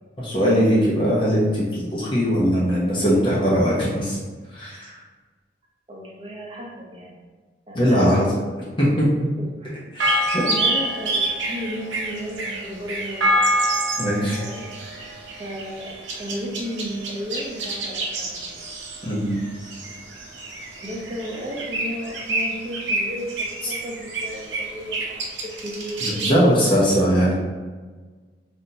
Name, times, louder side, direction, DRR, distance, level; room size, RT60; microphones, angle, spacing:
voice 1, 0.2-4.2 4.5-4.9 7.7-8.3 8.8-9.1 9.9-10.4 14.0-14.4 19.0-19.4 23.6-23.7 26.0-27.3, equal, 25° left, -7 dB, 0.9 m, -20 dB
voice 2, 5.9-7.2 7.7-8.6 9.6-9.8 10.1-13.4 14.4-14.7 15.4-15.9 16.2-18.6 20.8-25.3 25.6-26.3, equal, 30° right, -3 dB, 0.8 m, -34 dB
sound 1, 10.0-26.3, right 1 dB, 85° right, 0.8 m, -27 dB
5.8 x 2.7 x 2.8 m, 1.4 s
head